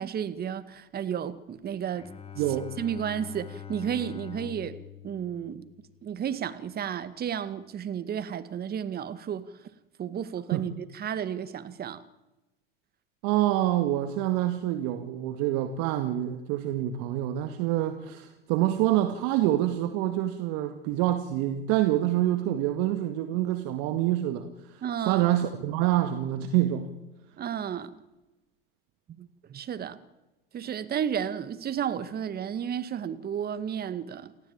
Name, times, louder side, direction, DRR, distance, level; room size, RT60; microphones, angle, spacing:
voice 1, 0.0-2.1 2.8-4.8 5.0-5.7 6.0-9.5 10.0-12.0 24.8-25.3 27.4-28.0 29.2-30.0 30.5-34.3, right 8 dB, 30° right, 2.0 m, -32 dB
Bowed string instrument, 1.9-6.4, left 9 dB, 20° left, 1.7 m, -44 dB
voice 2, 2.4-2.7 10.5-10.6 13.2-26.9, right 13 dB, 60° right, 2.1 m, -26 dB
29.0 x 14.5 x 8.9 m
hypercardioid pair, 95°, 30 cm